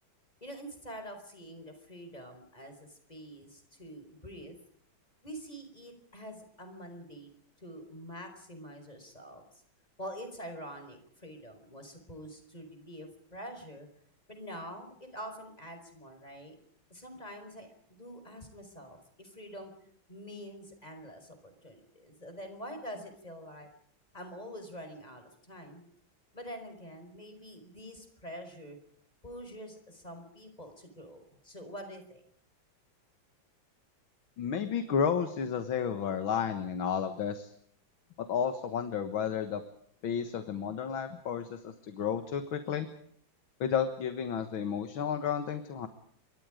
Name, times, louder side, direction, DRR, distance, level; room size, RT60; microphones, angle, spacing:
voice 1, 0.4-4.6 5.2-7.3 7.6-9.4 10.0-13.9 14.3-16.6 16.9-19.7 20.1-23.7 24.1-25.8 26.3-28.8 29.2-32.2, equal, 20° left, 6 dB, 5.0 m, -46 dB
voice 2, 34.4-37.5 38.2-39.6 40.0-42.9 43.6-45.9, left 7 dB, 90° left, 9 dB, 2.2 m, -32 dB
28.0 x 24.0 x 5.1 m, 0.65 s
omnidirectional pair, 2.1 m